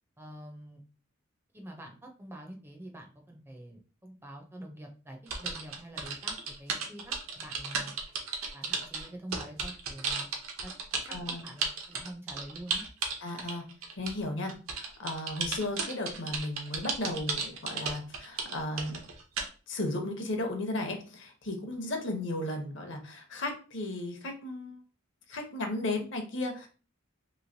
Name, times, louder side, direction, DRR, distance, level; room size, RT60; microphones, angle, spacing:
voice 1, 0.2-0.8 1.5-6.3 6.6-7.9 8.5-10.3 10.6-10.7 11.0-12.8, right 1 dB, 10° right, 2 dB, 0.4 m, -46 dB
sound 1, 5.3-14.2 14.5-19.5, right 5 dB, 90° right, 0.7 m, -34 dB
voice 2, 11.1-11.4 13.2-13.6 14.0-19.0 19.7-24.8 25.3-26.7, left 2 dB, 60° left, 4 dB, 0.7 m, -35 dB
3.0 x 2.9 x 2.6 m, 0.37 s
head